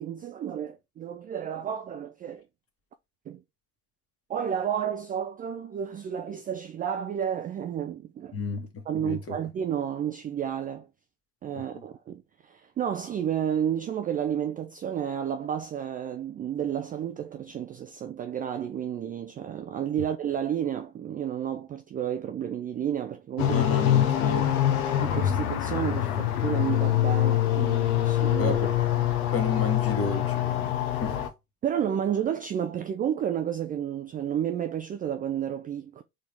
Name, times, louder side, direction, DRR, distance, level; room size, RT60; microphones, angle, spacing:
voice 1, 0.0-2.4 3.3-3.4 4.3-8.4 8.9-10.9 11.4-23.7 24.8-28.6 31.6-36.0, right 9 dB, 20° right, 0.3 m, -31 dB
voice 2, 8.3-9.3 23.5-24.5 28.4-28.7 29.3-30.7 31.0-31.2, left 4 dB, 30° left, 1.6 m, -32 dB
sound 1, 23.4-31.3, left 12 dB, 70° left, 0.9 m, -24 dB
4.2 x 3.7 x 3.3 m
figure-of-eight pair, 65°, 47 cm